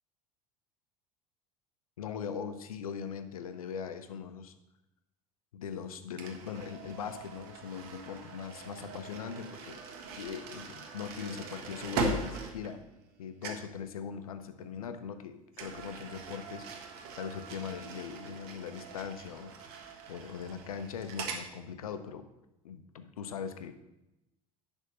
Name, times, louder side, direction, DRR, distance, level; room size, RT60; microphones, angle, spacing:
voice 1, 2.0-4.5 5.5-9.8 10.1-12.8 13.2-16.7 17.2-19.8 20.1-22.3 22.6-23.7, left 7 dB, 85° left, 10 dB, 0.7 m, -40 dB
sound 1, 6.2-13.2 13.4-13.7 15.5-21.5, right 3 dB, 60° right, 1.4 m, -40 dB
10.5 x 3.6 x 6.5 m, 0.92 s
hypercardioid pair, 70°, 18 cm